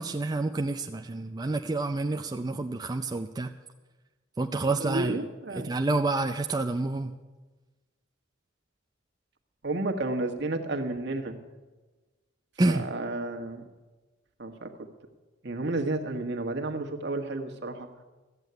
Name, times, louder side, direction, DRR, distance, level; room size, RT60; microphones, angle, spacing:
voice 1, 0.0-3.5 4.4-5.1 5.6-7.1 12.6-12.8, right 2 dB, 20° right, 5 dB, 0.4 m, -28 dB
voice 2, 4.8-5.7 9.6-11.4 12.7-13.6 14.4-14.7 15.4-17.9, right 2 dB, 60° right, 4 dB, 1.5 m, -31 dB
14.0 x 8.2 x 9.3 m, 1.2 s
head